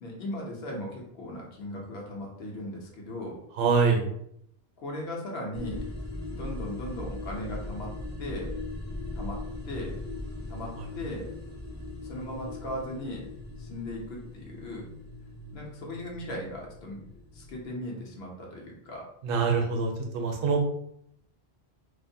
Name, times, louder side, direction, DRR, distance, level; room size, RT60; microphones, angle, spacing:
voice 1, 0.0-3.4 4.8-5.8 6.3-7.9 8.2-8.5 9.1-9.4 9.7-10.0 10.5-11.3 12.0-13.3 13.6-14.9 15.5-17.0 17.3-19.1, left 1 dB, 75° left, -1 dB, 1.0 m, -37 dB
voice 2, 3.6-4.1 10.8-10.9 19.2-20.6, right 5 dB, 65° right, 2 dB, 0.7 m, -25 dB
sound 1, 5.5-17.8, left 2 dB, 30° left, 0.3 m, -39 dB
2.5 x 2.1 x 2.6 m, 0.72 s
omnidirectional pair, 1.1 m